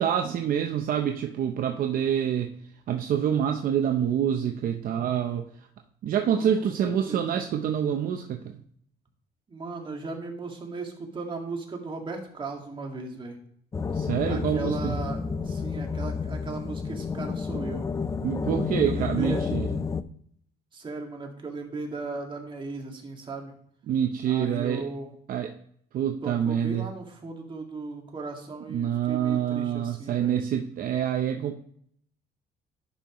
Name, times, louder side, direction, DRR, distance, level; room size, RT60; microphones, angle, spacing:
voice 1, 0.0-2.5 2.9-5.4 6.0-8.6 13.9-14.9 18.2-19.7 23.9-24.9 25.3-25.5 25.9-26.9 28.7-31.6, right 9 dB, 55° right, 5 dB, 0.7 m, -26 dB
voice 2, 6.2-7.4 9.5-13.4 14.3-17.8 18.8-19.4 20.7-23.5 24.3-25.1 26.2-30.4, right 3 dB, 30° right, 1 dB, 2.0 m, -37 dB
sound 1, 13.7-20.0, left 5 dB, 20° left, 0.4 m, -30 dB
11.5 x 5.5 x 3.0 m, 0.65 s
cardioid pair, 110°, 17 cm